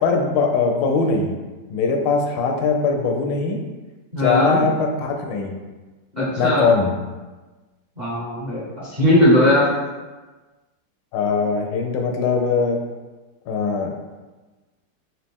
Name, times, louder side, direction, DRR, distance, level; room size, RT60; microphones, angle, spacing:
voice 1, 0.0-1.4 1.7-3.6 4.2-5.6 6.4-7.0 11.1-12.8 13.5-13.9, left 4 dB, 80° left, 3 dB, 1.2 m, -21 dB
voice 2, 4.1-4.6 6.2-6.7 8.0-9.7, left 1 dB, 30° right, -9 dB, 0.9 m, -18 dB
4.3 x 2.6 x 3.5 m, 1.2 s
omnidirectional pair, 2.0 m